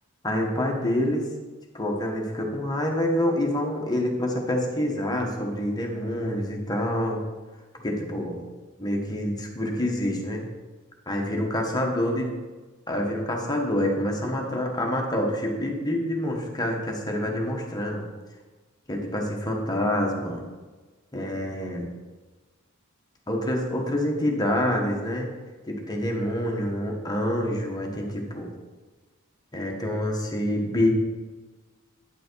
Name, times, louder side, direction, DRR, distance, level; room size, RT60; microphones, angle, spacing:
voice 1, 0.2-1.3 1.7-7.2 7.7-8.4 8.8-10.4 11.1-12.3 12.9-18.0 18.9-20.4 21.1-21.9 23.3-25.3 25.7-28.5 29.5-30.9, left 1 dB, 20° left, 0 dB, 1.3 m, -27 dB
9.2 x 6.1 x 4.6 m, 1.3 s
head